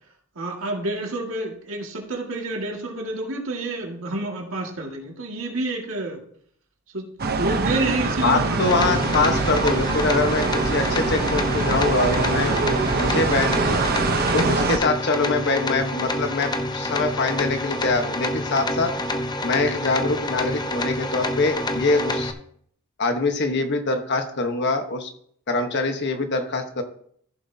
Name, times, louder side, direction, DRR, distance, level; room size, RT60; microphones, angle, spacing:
voice 1, 0.4-6.2 6.9-7.1 7.4-8.8, right 2 dB, 70° right, 0 dB, 2.1 m, -29 dB
sound 1, 7.2-14.8, right 3 dB, 50° right, 0.9 m, -24 dB
voice 2, 8.2-12.5 13.0-13.9 14.3-18.9 19.4-22.3 23.0-25.1 25.5-26.8, left 3 dB, 55° left, 6 dB, 1.3 m, -24 dB
sound 2, 8.6-22.3, left 1 dB, 20° left, 0.7 m, -28 dB
14.5 x 7.5 x 2.8 m, 0.63 s
head